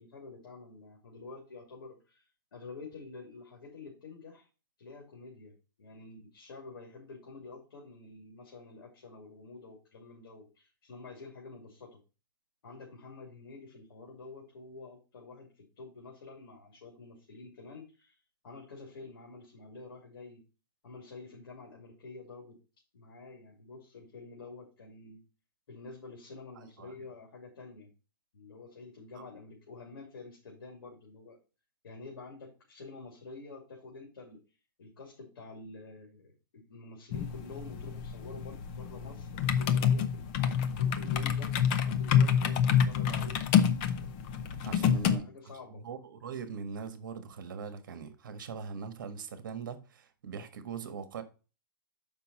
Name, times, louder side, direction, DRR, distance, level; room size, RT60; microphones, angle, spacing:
voice 1, 0.0-2.3 2.5-4.5 4.8-5.5 5.8-12.0 12.6-18.2 18.4-20.4 20.8-22.6 22.9-25.2 25.7-27.9 28.3-31.4 31.8-34.4 34.8-43.4 44.6-45.9, left 3 dB, 75° left, 2.7 m, -48 dB
voice 2, 26.5-26.9 29.1-29.2 44.6-45.2 45.8-51.2, right 5 dB, 60° right, 1.4 m, -41 dB
sound 1, 37.1-45.2, left 8 dB, 25° left, 0.5 m, -28 dB
7.0 x 5.6 x 4.1 m
hypercardioid pair, 175°, 12 cm